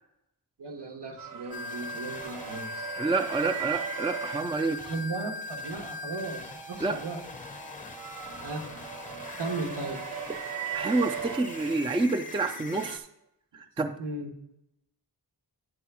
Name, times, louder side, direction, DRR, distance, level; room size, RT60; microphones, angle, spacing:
voice 1, 0.6-3.0 4.9-7.2 8.4-8.6 9.4-10.0 14.0-14.3, right 3 dB, 75° right, 1 dB, 1.4 m, -36 dB
sound 1, 1.2-4.4 6.8-12.3, right 8 dB, 55° right, 0.7 m, -39 dB
sound 2, 1.5-13.0, left 3 dB, 20° left, 0.6 m, -41 dB
voice 2, 3.0-4.8 6.8-7.0 10.7-13.0 13.5-13.9, right 3 dB, 15° right, 9 dB, 0.3 m, -28 dB
9.7 x 3.4 x 6.0 m, 0.80 s
wide cardioid pair, 125°, 41 cm